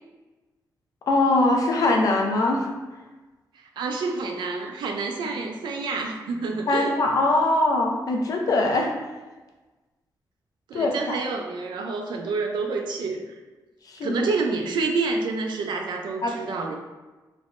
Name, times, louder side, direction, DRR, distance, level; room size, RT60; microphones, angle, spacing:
voice 1, 1.1-2.7 6.7-8.9 10.7-11.2 13.9-14.2 16.2-16.4, left 2 dB, 50° left, 1 dB, 0.4 m, -22 dB
voice 2, 3.8-7.0 10.7-13.2 14.0-16.7, right 4 dB, 85° right, 3 dB, 0.4 m, -28 dB
3.4 x 2.0 x 2.4 m, 1.2 s
wide cardioid pair, 170°, 8 cm